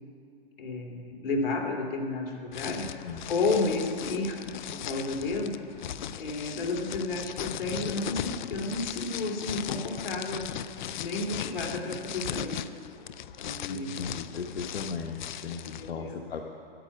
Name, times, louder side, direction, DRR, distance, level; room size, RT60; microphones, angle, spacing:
voice 1, 0.6-2.9 3.3-4.4 4.7-5.6 6.2-10.5 11.0-12.6 13.4-14.0 15.8-16.2, left 3 dB, 65° left, 1 dB, 2.7 m, -31 dB
sound 1, 2.5-15.9, left 10 dB, 50° left, 0.5 m, -38 dB
voice 2, 2.7-3.2 13.7-16.5, left 5 dB, 85° left, 2 dB, 1.1 m, -37 dB
10.0 x 8.5 x 9.8 m, 2.5 s
hypercardioid pair, 150°, 30 cm